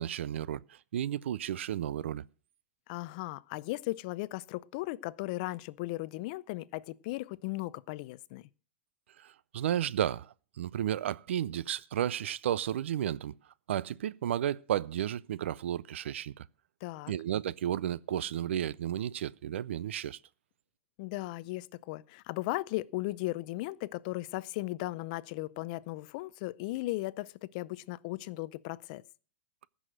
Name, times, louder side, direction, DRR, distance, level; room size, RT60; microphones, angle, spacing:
voice 1, 0.0-2.2 9.2-13.3 13.7-16.4 17.1-20.2, right 11 dB, 80° right, 0.5 m, -33 dB
voice 2, 2.9-8.4 16.8-17.1 21.0-29.0, left 19 dB, 40° left, 0.5 m, -36 dB
14.5 x 6.3 x 7.6 m
supercardioid pair, 155°, 7 cm